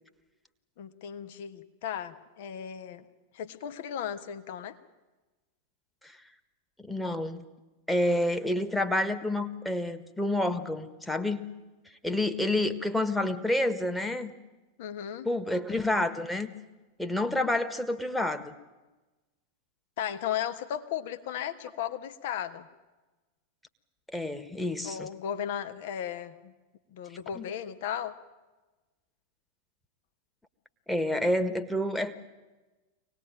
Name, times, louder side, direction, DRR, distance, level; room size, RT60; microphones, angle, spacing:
voice 1, 0.8-3.0 3.3-4.8 14.8-15.3 20.0-22.7 24.8-26.5 26.9-28.2, left 9 dB, 50° left, 9 dB, 1.3 m, -35 dB
voice 2, 6.8-7.4 7.9-11.4 12.0-14.3 15.2-16.5 17.0-18.5 24.1-25.1 27.3-27.5 30.9-32.1, left 1 dB, 5° left, 7 dB, 1.5 m, -29 dB
24.5 x 19.0 x 9.1 m, 1.2 s
figure-of-eight pair, 90°, 0 cm